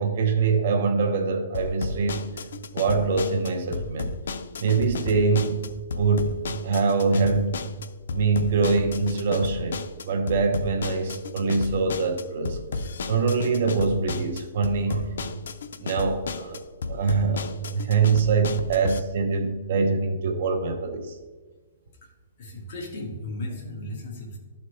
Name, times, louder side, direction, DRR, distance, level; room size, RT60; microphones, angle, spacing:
voice 1, 0.0-2.2 2.7-4.1 4.6-6.3 6.6-7.6 8.1-9.8 10.1-12.6 13.1-15.2 15.8-16.6 16.9-21.1, right 4 dB, 55° right, 5 dB, 0.8 m, -24 dB
sound 1, 1.5-19.0, left 4 dB, 85° left, 0.5 m, -33 dB
voice 2, 22.4-24.4, left 1 dB, 45° left, -1 dB, 1.8 m, -35 dB
12.0 x 4.2 x 3.2 m, 1.4 s
hypercardioid pair, 170°, 0 cm